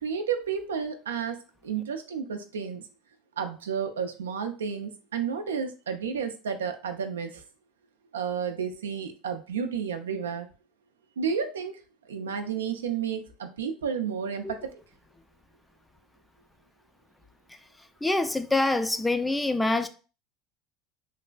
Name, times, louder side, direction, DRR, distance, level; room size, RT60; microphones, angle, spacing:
voice 1, 0.0-1.4 1.6-2.8 3.4-7.4 8.1-10.5 11.2-11.8 12.1-14.5, right 7 dB, 90° right, 0.3 m, -31 dB
voice 2, 17.5-19.9, left 2 dB, 10° left, 0.3 m, -26 dB
3.1 x 2.4 x 2.2 m
hypercardioid pair, 80°, 0 cm